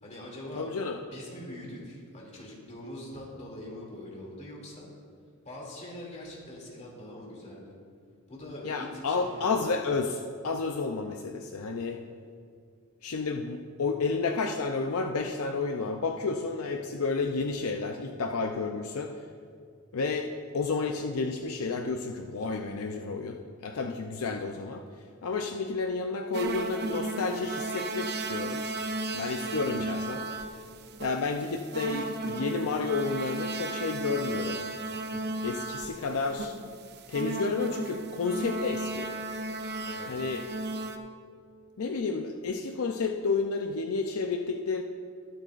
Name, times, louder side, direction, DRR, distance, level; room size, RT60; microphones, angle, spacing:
voice 1, 0.0-0.7 1.1-4.9 5.4-7.7 8.3-9.6 29.4-29.7 39.9-40.2, left 1 dB, 35° left, -4 dB, 2.7 m, -43 dB
voice 2, 0.6-1.0 8.6-12.0 13.0-19.1 19.9-20.3 20.5-24.8 25.2-28.8 29.1-30.2 31.0-34.6 35.1-36.5 37.1-39.1 40.1-40.4 41.8-44.8, left 4 dB, 75° left, 4 dB, 0.5 m, -31 dB
sound 1, 26.3-41.0, right 3 dB, 50° right, 0.6 m, -35 dB
21.0 x 7.8 x 2.5 m, 2.2 s
head